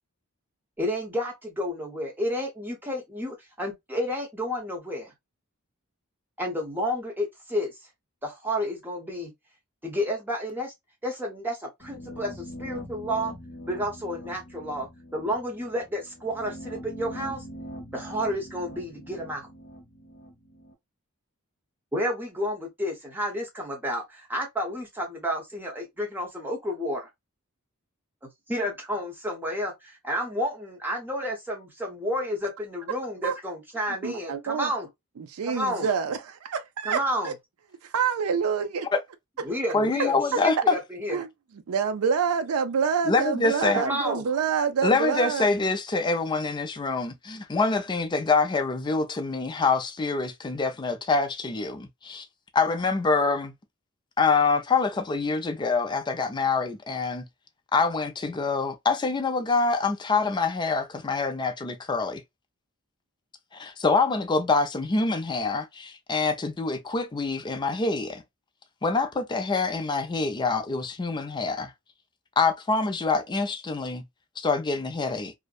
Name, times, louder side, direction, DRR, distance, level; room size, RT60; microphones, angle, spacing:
voice 1, 0.8-5.1 6.4-7.8 8.2-9.3 9.8-10.7 11.0-13.3 13.7-14.9 15.1-17.5 17.9-19.5 21.9-27.1 28.5-34.9 35.4-35.9 36.8-37.3 39.4-41.2 43.7-44.3, equal, 10° right, 0.8 m, -31 dB
sound 1, 11.8-20.7, equal, 60° left, 0.8 m, -42 dB
voice 2, 34.0-34.7 35.3-37.0 37.9-38.7 41.1-41.3 41.7-45.5, right 6 dB, 80° right, 0.4 m, -26 dB
voice 3, 39.7-40.8 43.1-43.8 44.8-52.3 52.5-53.5 54.2-57.2 57.7-62.2 63.5-68.2 68.8-71.7 72.4-74.0 74.4-75.3, left 4 dB, 20° left, 0.4 m, -25 dB
2.6 x 2.1 x 2.2 m
head